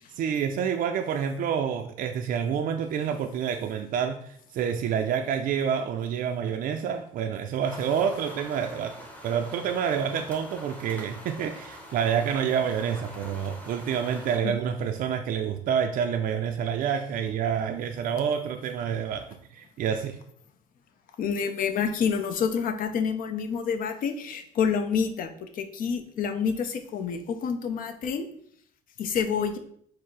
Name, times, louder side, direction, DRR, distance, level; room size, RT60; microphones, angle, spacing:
voice 1, 0.2-19.3 19.5-20.2, right 7 dB, 55° right, 4 dB, 0.4 m, -28 dB
sound 1, 7.6-14.4, equal, 10° left, 0.8 m, -45 dB
voice 2, 21.2-28.3 29.0-29.6, left 6 dB, 55° left, 7 dB, 0.6 m, -28 dB
4.6 x 2.0 x 4.6 m, 0.65 s
cardioid pair, 110°, 17 cm